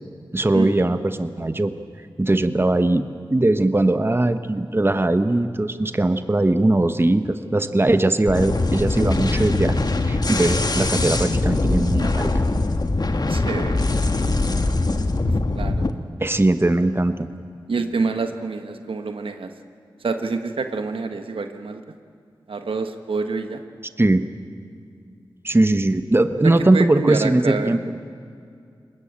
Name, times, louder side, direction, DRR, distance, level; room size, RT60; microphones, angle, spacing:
voice 1, 0.3-1.7 2.2-3.0 3.3-12.3 16.2-17.3 24.0-24.2 25.4-27.8, right 2 dB, 25° right, 10 dB, 1.1 m, -20 dB
sound 1, 8.3-15.9, left 2 dB, 50° left, 1.5 m, -22 dB
voice 2, 13.3-13.9 15.2-15.9 17.7-19.5 20.0-21.8 22.5-23.6 26.4-27.7, right 4 dB, 80° right, 7 dB, 1.3 m, -27 dB
22.5 x 20.0 x 8.8 m, 2.3 s
cardioid pair, 40°, 9 cm